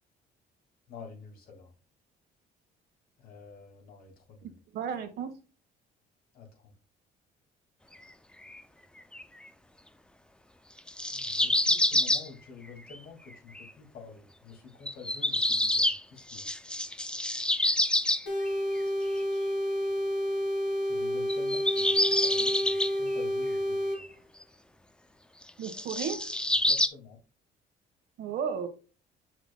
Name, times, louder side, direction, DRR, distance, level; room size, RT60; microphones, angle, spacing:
voice 1, 0.9-1.7 3.2-4.6 6.3-6.7 11.1-16.5 20.8-24.1 26.6-27.2, left 5 dB, 65° left, 2.5 m, -49 dB
voice 2, 4.4-5.3 25.6-26.3 28.2-28.7, right 7 dB, 75° right, 1.5 m, -34 dB
sound 1, 8.5-8.6 9.1-9.2 10.8-12.3 12.9-13.0 13.3-13.6 14.9-16.0 16.3-18.5 21.3-22.9 24.0-24.1 25.5-26.9, left 1 dB, 5° left, 0.4 m, -27 dB
sound 2, 18.3-24.0, equal, 85° left, 2.4 m, -30 dB
7.0 x 5.9 x 2.3 m
cardioid pair, 110°, 17 cm